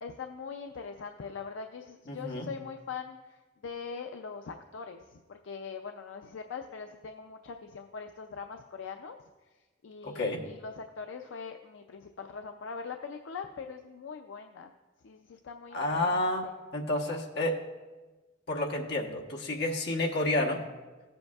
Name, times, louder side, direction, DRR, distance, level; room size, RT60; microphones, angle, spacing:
voice 1, 0.0-14.7 15.0-16.1 16.4-16.5, left 5 dB, 80° left, 5 dB, 0.4 m, -42 dB
voice 2, 2.1-2.5 10.0-10.4 15.7-16.4 16.7-17.6 18.5-20.6, left 1 dB, 60° left, 0 dB, 1.1 m, -30 dB
15.0 x 7.8 x 2.3 m, 1.2 s
head